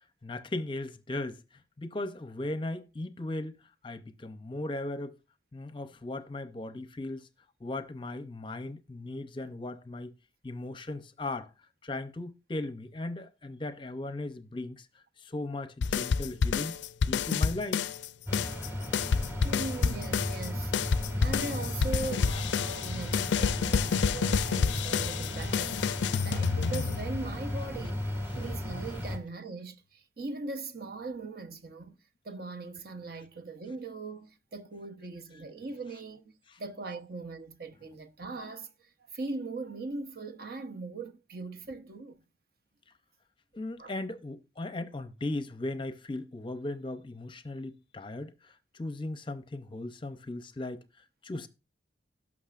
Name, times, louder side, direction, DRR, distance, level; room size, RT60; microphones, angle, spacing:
voice 1, 0.2-3.6 3.8-5.2 5.5-7.3 7.6-10.1 10.4-11.5 11.8-17.8 36.5-36.6 43.5-51.5, left 2 dB, 25° left, 0.6 m, -37 dB
sound 1, 15.8-18.1 18.3-27.3, left 6 dB, 75° left, 0.4 m, -29 dB
sound 2, 18.3-29.2, left 1 dB, 15° right, 1.7 m, -35 dB
voice 2, 19.4-28.1 28.4-32.0 32.2-42.2 43.8-43.9, right 3 dB, 55° right, 0.9 m, -40 dB
17.5 x 6.1 x 2.5 m
head